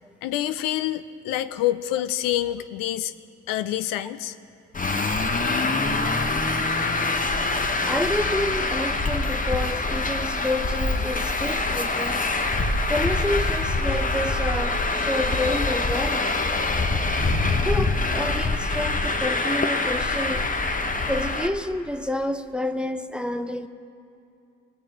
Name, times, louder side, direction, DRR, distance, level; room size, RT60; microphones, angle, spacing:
voice 1, 0.2-3.1 3.5-4.3, left 13 dB, 75° left, 13 dB, 0.5 m, -27 dB
Traffic noise roadway noise, 4.7-21.5, left 3 dB, 25° left, 1.0 m, -24 dB
voice 2, 7.8-12.3 12.9-16.3 17.4-20.5 21.1-23.7, left 1 dB, 5° right, 9 dB, 0.7 m, -29 dB
sound 1, 17.1-18.5 18.8-18.9 19.0-19.8, right 5 dB, 85° right, 0.9 m, -38 dB
19.5 x 7.5 x 4.5 m, 2.6 s
hypercardioid pair, 45°, 34 cm